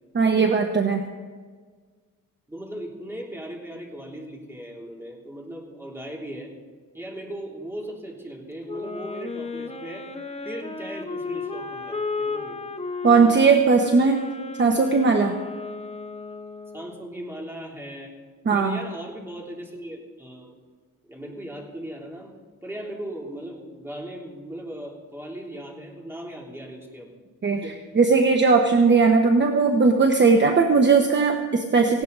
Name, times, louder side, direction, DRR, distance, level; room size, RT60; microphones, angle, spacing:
voice 1, 0.1-1.0 13.0-14.2 14.6-15.4 18.5-18.8 27.4-27.6 27.9-32.0, right 4 dB, 30° right, 4 dB, 1.2 m, -18 dB
voice 2, 2.5-6.5 6.9-10.1 10.4-12.6 16.7-18.1 18.5-20.6 21.1-22.3 22.6-27.1 27.5-27.8, right 1 dB, 5° right, -1 dB, 3.3 m, -38 dB
Wind instrument woodwind instrument, 8.7-17.0, left 4 dB, 20° left, 1.1 m, -34 dB
18.5 x 16.5 x 4.1 m, 1.5 s
cardioid pair, 130°, 35 cm